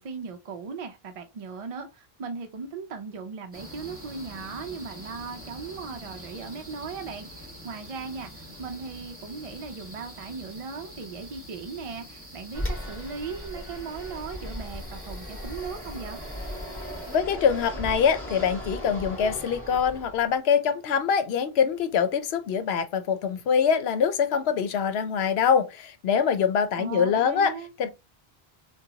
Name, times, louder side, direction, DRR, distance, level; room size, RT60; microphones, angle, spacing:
voice 1, 0.0-16.2 26.7-27.7, right 5 dB, 55° right, 0.4 m, -38 dB
sound 1, 3.5-17.2, equal, 15° right, 1.1 m, -45 dB
Fixed-wing aircraft airplane, 12.5-20.3, left 1 dB, 10° left, 1.5 m, -37 dB
voice 2, 17.1-27.5 27.8-27.9, left 7 dB, 80° left, 0.9 m, -24 dB
3.9 x 2.2 x 2.7 m
omnidirectional pair, 1.0 m